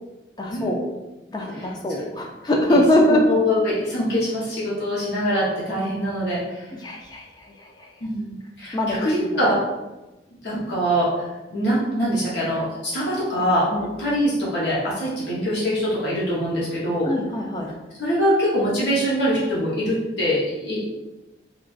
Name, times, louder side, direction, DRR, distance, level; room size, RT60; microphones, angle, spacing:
voice 1, 0.4-0.8 1.3-3.2 6.8-7.9 8.7-9.0 9.2-9.4 10.5-10.6 13.7-13.9 17.1-17.7, left 1 dB, 25° left, 1 dB, 0.3 m, -22 dB
voice 2, 3.3-6.7 8.0-9.6 10.4-13.7 14.0-17.1 18.0-20.9, equal, 75° left, -6 dB, 0.9 m, -23 dB
3.8 x 2.3 x 2.3 m, 1.1 s
head